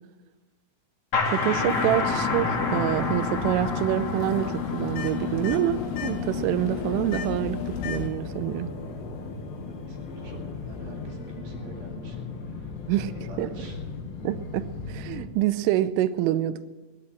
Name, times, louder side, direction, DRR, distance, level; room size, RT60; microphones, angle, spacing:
sound 1, 1.1-6.5, left 4 dB, 35° left, 2.3 m, -29 dB
voice 1, 1.3-8.7 12.9-13.1 13.4-13.5 14.2-16.7, right 13 dB, 80° right, 14 dB, 3.1 m, -26 dB
sound 2, 1.5-8.1, left 7 dB, 75° left, 3.6 m, -33 dB
Fixed-wing aircraft airplane, 3.3-15.3, left 4 dB, 55° left, 2.9 m, -37 dB
voice 2, 9.6-12.7 13.0-13.8, right 3 dB, 55° right, 1 dB, 3.5 m, -46 dB
16.0 x 11.0 x 7.6 m, 1.2 s
omnidirectional pair, 5.9 m